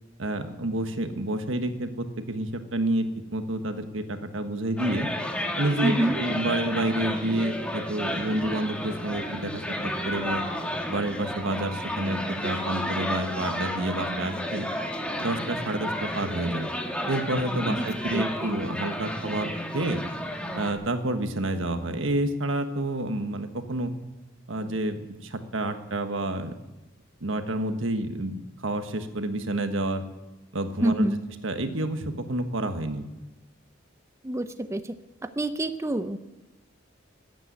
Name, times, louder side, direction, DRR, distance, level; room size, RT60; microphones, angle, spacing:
voice 1, 0.2-3.1 3.3-5.1 5.6-10.4 10.9-14.7 15.2-16.7 17.1-20.0 20.5-23.9 24.5-26.5 27.2-28.3 28.6-30.0 30.5-31.1 31.4-33.1, right 1 dB, 80° right, 7 dB, 1.4 m, -29 dB
sound 1, 4.8-20.7, equal, 5° left, 1.5 m, -32 dB
voice 2, 5.8-6.2 17.6-17.9 18.1-18.6 30.8-31.2 34.2-34.9 35.2-36.2, right 1 dB, 15° right, 10 dB, 0.5 m, -27 dB
14.5 x 9.1 x 9.2 m, 1.1 s
head